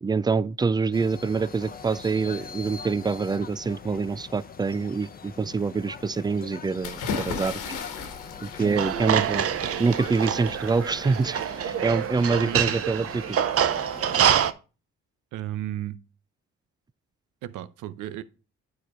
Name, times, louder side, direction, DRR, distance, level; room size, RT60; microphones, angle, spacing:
voice 1, 0.0-7.6 8.4-9.5 9.8-13.4, right 4 dB, 15° right, 0.3 m, -26 dB
sound 1, 0.9-14.5, left 6 dB, 30° left, 0.8 m, -42 dB
sound 2, 6.8-11.7, left 5 dB, 90° left, 1.5 m, -36 dB
voice 2, 8.6-9.3 12.5-12.8 15.3-16.0 17.4-18.2, right 12 dB, 90° right, 0.7 m, -35 dB
sound 3, 8.8-14.5, right 9 dB, 50° right, 0.7 m, -26 dB
9.3 x 4.3 x 4.8 m
cardioid pair, 90°, 30 cm